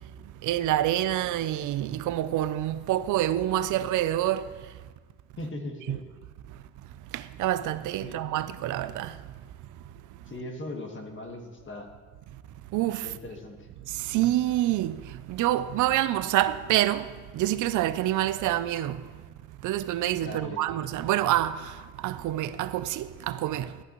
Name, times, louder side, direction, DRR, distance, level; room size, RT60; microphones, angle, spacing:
voice 1, 0.4-4.4 5.9-6.0 7.1-9.2 12.7-13.1 13.9-19.0 19.6-23.7, right 13 dB, 80° right, 0.5 m, -27 dB
voice 2, 5.4-6.0 8.0-8.2 10.3-11.9 13.0-13.7 20.1-20.6, left 1 dB, 40° left, 1.6 m, -39 dB
13.0 x 8.2 x 3.0 m
cardioid pair, 90°, 30 cm